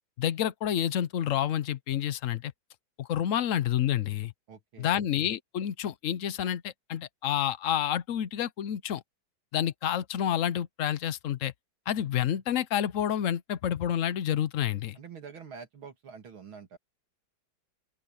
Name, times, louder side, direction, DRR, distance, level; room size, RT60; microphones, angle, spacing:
voice 1, 0.2-2.5 3.0-4.3 4.8-9.0 9.5-11.5 11.9-15.0, left 10 dB, 70° left, 0.7 m, -29 dB
voice 2, 4.5-5.0 14.9-16.8, right 6 dB, 85° right, 3.3 m, -46 dB
open air
omnidirectional pair, 2.2 m